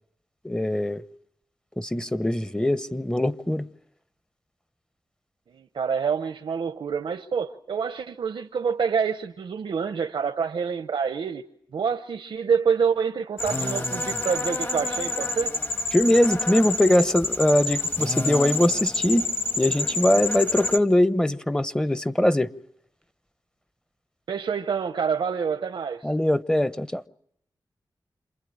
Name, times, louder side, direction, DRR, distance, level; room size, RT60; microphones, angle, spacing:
voice 1, 0.4-1.0 1.8-3.7 15.9-19.3 19.6-22.5 26.0-27.0, left 1 dB, 10° left, 1.0 m, -22 dB
voice 2, 5.5-11.4 11.7-15.6 24.3-26.1, right 6 dB, 90° right, 1.0 m, -27 dB
sound 1, 13.4-20.8, left 2 dB, 25° left, 1.5 m, -28 dB
28.0 x 22.0 x 8.9 m
wide cardioid pair, 70°, 8 cm